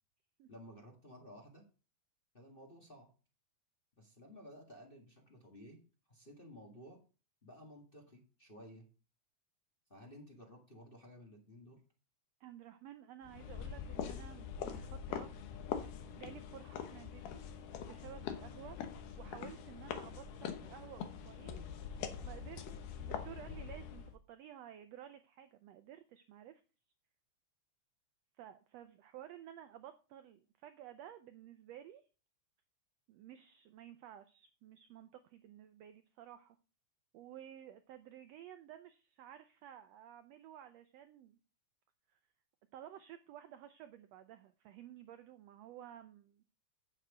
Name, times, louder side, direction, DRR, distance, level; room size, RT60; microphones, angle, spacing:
voice 1, 0.5-1.6 2.3-3.1 4.0-5.8 6.1-7.0 7.4-8.9 9.9-11.8, equal, 25° left, 1 dB, 1.4 m, -55 dB
voice 2, 12.4-15.3 16.1-17.4 17.9-18.8 19.2-21.6 22.2-26.6 28.4-32.0 33.1-36.6 37.1-41.4 42.1-42.2 42.7-46.4, right 11 dB, 80° right, 10 dB, 1.5 m, -53 dB
sound 1, 13.2-24.2, left 8 dB, 90° left, 2.7 m, -44 dB
8.9 x 7.6 x 4.9 m, 0.35 s
omnidirectional pair, 3.5 m